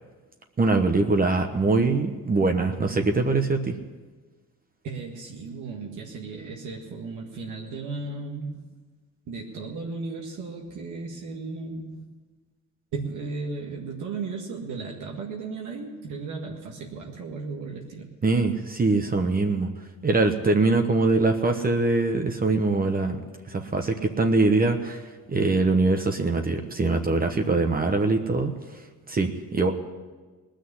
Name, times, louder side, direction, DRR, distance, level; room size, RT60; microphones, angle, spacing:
voice 1, 0.6-3.8 18.2-19.7 20.0-23.2 23.5-25.0 25.3-28.5 29.1-29.7, right 3 dB, 30° right, 5 dB, 1.1 m, -23 dB
voice 2, 4.8-8.6 9.3-12.1 12.9-18.1, right 4 dB, 80° right, -1 dB, 1.8 m, -35 dB
19.0 x 6.5 x 9.5 m, 1.4 s
cardioid pair, 90°, 30 cm